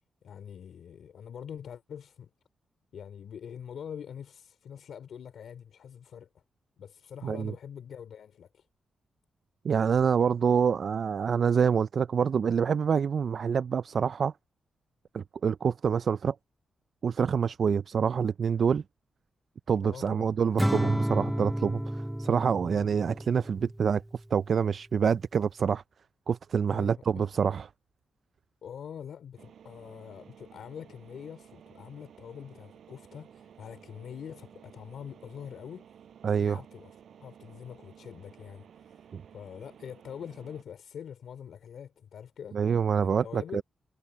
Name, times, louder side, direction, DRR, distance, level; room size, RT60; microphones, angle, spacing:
voice 1, 0.2-2.3 2.9-6.3 6.8-8.7 19.8-20.4 26.7-27.2 28.6-36.0 36.2-36.9 37.2-39.1 39.3-42.6 42.9-43.6, left 8 dB, 75° left, 2.7 m, -44 dB
voice 2, 7.2-7.5 9.6-14.3 15.1-16.4 17.0-18.8 19.7-25.8 26.3-27.7 36.2-36.6 39.1-39.2 42.5-43.6, right 6 dB, 55° right, 0.3 m, -26 dB
Acoustic guitar / Strum, 20.6-23.9, right 1 dB, 5° right, 1.3 m, -30 dB
sound 1, 29.4-40.6, right 8 dB, 75° right, 7.2 m, -54 dB
cardioid pair, 110°, 0 cm